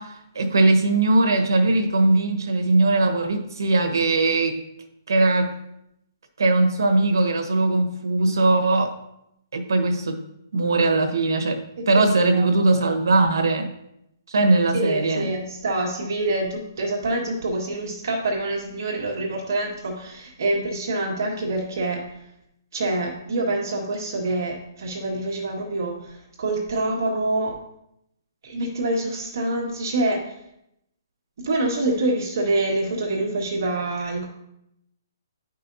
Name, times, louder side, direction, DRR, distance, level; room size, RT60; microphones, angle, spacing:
voice 1, 0.0-4.6 5.1-5.5 6.4-8.9 9.5-10.2 10.5-13.7 14.3-15.3, right 2 dB, 85° right, 5 dB, 1.4 m, -20 dB
voice 2, 12.3-13.3 14.7-22.0 22.7-27.5 28.4-30.2 31.4-34.3, right 2 dB, 65° right, -1 dB, 1.7 m, -26 dB
10.5 x 5.5 x 2.7 m, 0.81 s
hypercardioid pair, 165°, 2 cm